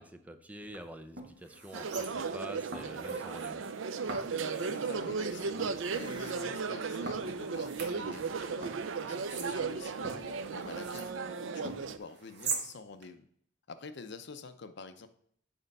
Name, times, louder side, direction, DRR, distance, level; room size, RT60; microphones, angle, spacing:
voice 1, 0.0-3.7, right 1 dB, 10° right, 8 dB, 0.5 m, -46 dB
sound 1, 0.6-0.8 1.2-2.4 2.7-3.5 4.1-5.0 5.6-6.4 7.1-8.3 8.6-11.1 11.6-12.7 13.0-13.1, right 4 dB, 60° right, 1.4 m, -42 dB
sound 2, 1.7-12.0, right 5 dB, 80° right, 0.5 m, -36 dB
voice 2, 4.6-13.3 13.7-15.1, left 4 dB, 60° left, 10 dB, 0.7 m, -47 dB
sound 3, 5.0-11.5, right 1 dB, 25° right, 1.0 m, -54 dB
7.9 x 4.4 x 5.4 m, 0.65 s
head